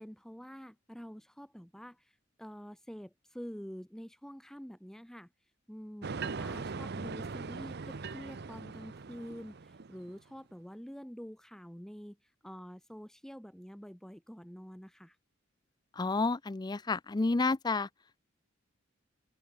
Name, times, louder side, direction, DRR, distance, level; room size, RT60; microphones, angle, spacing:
voice 1, 0.0-5.3 5.7-15.2, equal, ahead, 1.0 m, -47 dB
sound 1, 6.0-10.2, right 4 dB, 50° right, 0.7 m, -40 dB
voice 2, 15.9-17.9, left 3 dB, 20° left, 0.4 m, -30 dB
open air
head